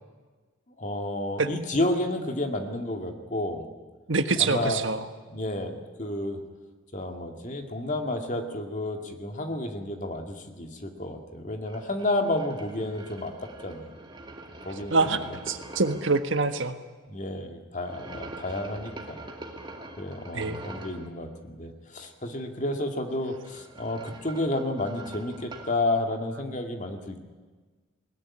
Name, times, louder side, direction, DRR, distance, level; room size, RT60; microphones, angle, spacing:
voice 1, 0.8-3.7 4.4-4.8 5.3-6.4 6.9-13.9 14.6-15.4 17.1-19.3 20.0-27.2, left 1 dB, 35° left, 5 dB, 2.2 m, -31 dB
voice 2, 4.1-5.0 14.9-15.2 15.5-16.8 20.3-20.6, right 3 dB, 60° right, 9 dB, 1.4 m, -25 dB
sound 1, 11.6-16.2 17.8-21.1 23.2-25.8, right 2 dB, 20° right, 2.1 m, -44 dB
21.0 x 18.5 x 9.9 m, 1.4 s
head